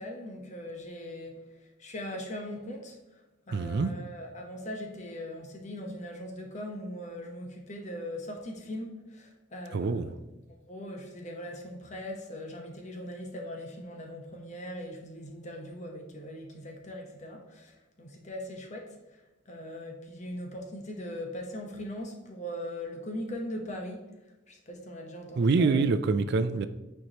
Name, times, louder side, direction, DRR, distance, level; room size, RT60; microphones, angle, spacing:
voice 1, 0.0-1.4 1.8-2.9 3.5-10.0 10.6-17.7 18.0-18.9 19.5-24.0 24.5-25.9, left 1 dB, 40° left, 1.0 m, -40 dB
voice 2, 3.5-3.9 9.7-10.1 25.4-26.7, right 4 dB, 55° right, 0.4 m, -25 dB
9.2 x 4.6 x 2.9 m
head